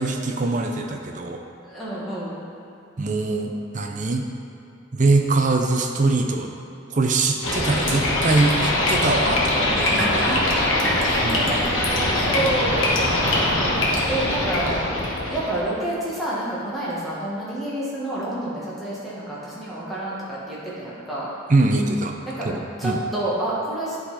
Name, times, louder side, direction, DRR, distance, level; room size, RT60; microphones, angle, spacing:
voice 1, 0.0-1.4 3.0-4.3 4.9-6.5 6.9-10.4 11.2-11.5 13.2-13.7 21.5-22.2 22.4-23.0, right 3 dB, 40° right, 3 dB, 0.6 m, -23 dB
voice 2, 1.6-2.4 10.2-12.9 14.1-14.8 15.3-21.3 22.4-22.5 22.8-24.0, right 1 dB, ahead, -9 dB, 1.5 m, -29 dB
sound 1, 7.4-15.6, left 1 dB, 80° left, 1.2 m, -22 dB
10.5 x 4.0 x 4.2 m, 2.8 s
head